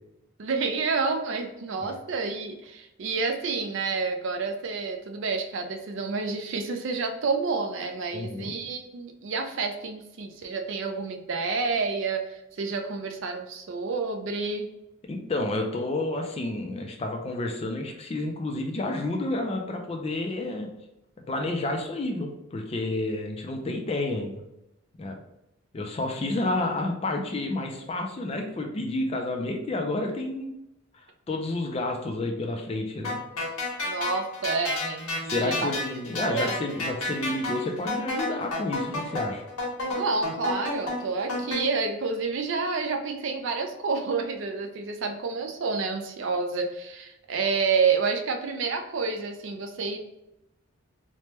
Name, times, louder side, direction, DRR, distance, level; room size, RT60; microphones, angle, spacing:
voice 1, 0.4-14.7 33.8-35.7 36.2-36.6 39.9-50.0, right 4 dB, 60° right, 5 dB, 0.4 m, -29 dB
voice 2, 8.1-8.5 15.1-20.7 21.3-24.4 25.0-25.2 25.7-30.5 31.3-33.2 35.2-39.4, left 2 dB, 30° left, 3 dB, 0.3 m, -30 dB
sound 1, 33.0-41.6, left 2 dB, 90° left, 1.1 m, -31 dB
3.2 x 2.1 x 2.9 m, 0.89 s
head